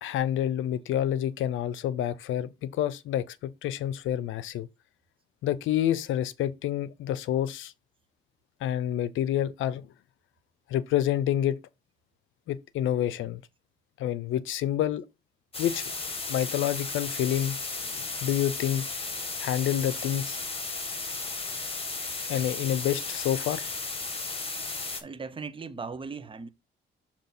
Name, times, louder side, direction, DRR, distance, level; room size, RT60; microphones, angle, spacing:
voice 1, 0.0-4.7 5.4-7.7 8.6-9.9 10.7-11.6 12.5-13.4 14.0-15.0 15.6-15.8 16.3-17.6 17.8-18.9 19.4-20.4 22.3-23.7, left 11 dB, 80° left, 0.6 m, -28 dB
sound 1, 15.5-25.0, left 3 dB, 30° left, 1.7 m, -34 dB
voice 2, 25.0-26.5, right 4 dB, 25° right, 0.9 m, -38 dB
6.7 x 3.0 x 5.9 m
cardioid pair, 90°, 20 cm